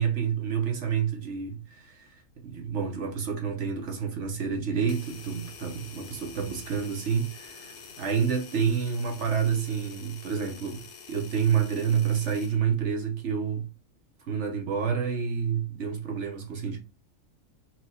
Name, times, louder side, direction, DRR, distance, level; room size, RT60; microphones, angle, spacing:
voice 1, 0.0-10.8 11.1-13.7 14.2-16.8, right 7 dB, 60° right, 1.0 m, -29 dB
sound 1, 4.9-12.6, left 6 dB, 55° left, 0.7 m, -47 dB
4.5 x 2.1 x 4.1 m
omnidirectional pair, 1.5 m